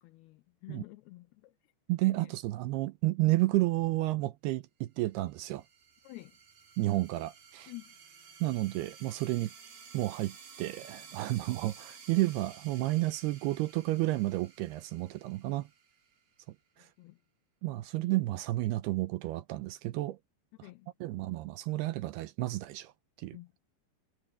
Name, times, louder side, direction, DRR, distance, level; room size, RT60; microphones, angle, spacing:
voice 1, 0.0-1.5 2.2-2.3 6.0-6.3 7.7-7.9 11.4-11.5 17.0-17.2 18.0-18.1 20.6-20.9 23.3-23.5, left 20 dB, 80° left, 2.3 m, -49 dB
voice 2, 1.9-5.6 6.8-7.7 8.4-9.5 9.9-15.7 17.6-20.2 20.6-20.7 21.0-22.9 23.2-23.4, right 18 dB, 80° right, 2.5 m, -31 dB
sound 1, 5.2-16.4, right 6 dB, 55° right, 6.1 m, -54 dB
omnidirectional pair, 5.0 m